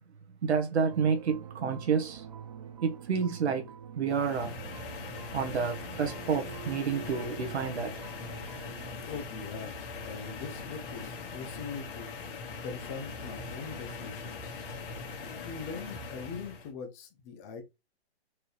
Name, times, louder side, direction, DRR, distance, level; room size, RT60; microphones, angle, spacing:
voice 1, 0.4-2.2 2.8-3.6 3.9-4.5 5.3-8.0, right 6 dB, 75° right, 1.3 m, -29 dB
sound 1, 0.9-8.9, right 9 dB, 35° right, 0.5 m, -46 dB
sound 2, 4.1-16.7, left 4 dB, 55° left, 1.8 m, -41 dB
voice 2, 9.0-14.6 15.3-17.6, left 5 dB, 15° left, 0.6 m, -42 dB
4.7 x 2.9 x 3.3 m
hypercardioid pair, 155°, 33 cm